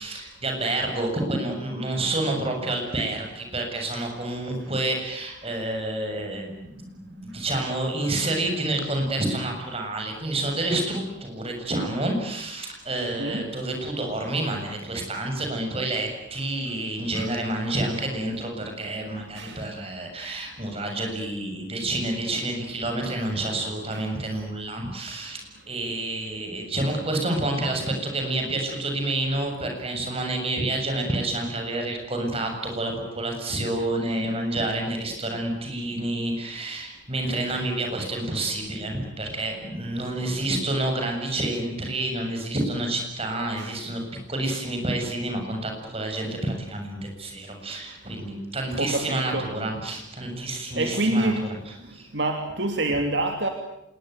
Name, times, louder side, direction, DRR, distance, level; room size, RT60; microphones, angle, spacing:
voice 1, 0.0-44.0 44.3-51.3 51.9-52.1, right 2 dB, 30° right, 2 dB, 7.3 m, -29 dB
voice 2, 48.8-49.5 50.8-51.5 52.1-53.5, right 2 dB, 60° right, 4 dB, 3.0 m, -26 dB
26.5 x 21.0 x 9.4 m, 0.84 s
head